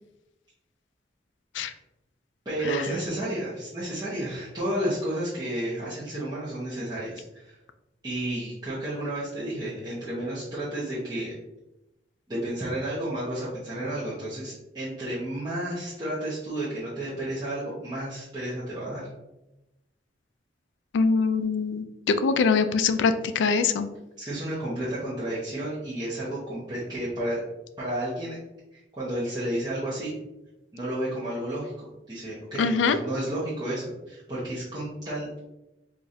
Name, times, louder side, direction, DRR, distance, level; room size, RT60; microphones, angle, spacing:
voice 1, 2.4-7.6 8.0-11.3 12.3-19.1 24.2-27.4 27.8-28.4 28.7-30.1 30.7-35.4, right 1 dB, 20° right, -11 dB, 0.9 m, -32 dB
voice 2, 20.9-23.9 32.6-33.0, left 5 dB, 85° left, 10 dB, 0.3 m, -23 dB
4.8 x 2.5 x 2.7 m, 0.95 s
head